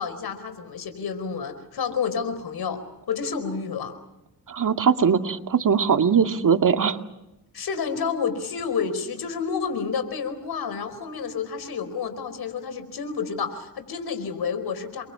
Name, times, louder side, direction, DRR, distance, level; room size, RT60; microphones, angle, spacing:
voice 1, 0.0-2.8 3.1-3.9 7.5-15.0, left 6 dB, 75° left, 11 dB, 4.8 m, -29 dB
voice 2, 4.5-7.0, right 6 dB, 55° right, 6 dB, 2.2 m, -20 dB
30.0 x 23.5 x 6.0 m, 0.92 s
cardioid pair, 65°, 38 cm